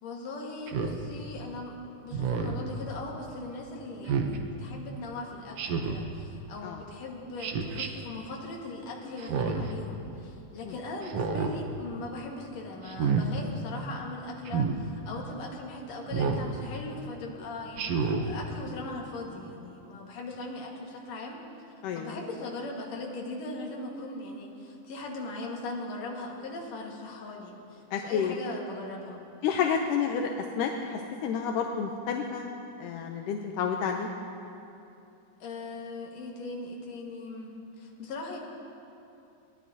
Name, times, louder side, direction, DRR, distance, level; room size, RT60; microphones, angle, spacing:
voice 1, 0.0-21.4 21.9-29.2 35.4-38.4, left 2 dB, 55° left, -1 dB, 2.6 m, -39 dB
Speech synthesizer, 0.7-1.0 2.1-2.6 4.1-4.4 5.6-6.1 7.4-7.9 9.2-9.7 11.0-11.5 12.8-13.2 14.4-14.8 16.1-16.5 17.7-18.3, right 5 dB, 90° right, 1.3 m, -29 dB
voice 2, 21.8-22.2 27.9-28.4 29.4-30.3 30.6-32.5 32.8-34.1, left 7 dB, 80° left, 2 dB, 2.1 m, -30 dB
22.5 x 17.5 x 2.8 m, 2.7 s
omnidirectional pair, 4.0 m